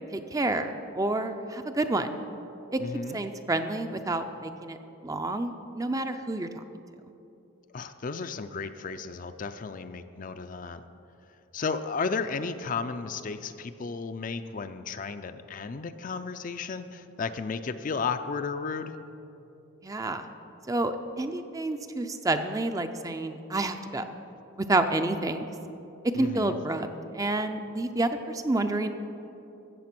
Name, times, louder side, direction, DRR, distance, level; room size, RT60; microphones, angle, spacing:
voice 1, 0.1-2.1 2.7-2.8 3.1-4.8 5.0-6.5 19.8-20.3 20.7-24.0 24.7-25.4 26.2-26.9 27.1-28.9, right 2 dB, 15° right, 8 dB, 0.4 m, -29 dB
voice 2, 2.8-3.2 7.7-10.8 11.5-18.9 26.1-26.6, left 4 dB, 40° left, 9 dB, 0.4 m, -33 dB
14.0 x 7.9 x 6.0 m, 2.9 s
head